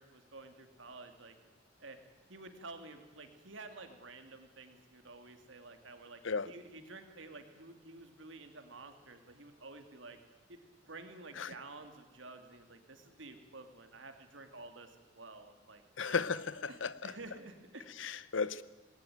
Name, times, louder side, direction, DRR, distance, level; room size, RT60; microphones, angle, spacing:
voice 1, 0.0-1.4 1.8-2.0 2.3-10.2 10.5-10.6 10.9-16.3 16.7-17.9, right 3 dB, 65° right, 2.7 m, -51 dB
voice 2, 16.0-16.9 18.0-18.6, left 5 dB, 70° left, 0.8 m, -34 dB
20.0 x 17.5 x 9.2 m
head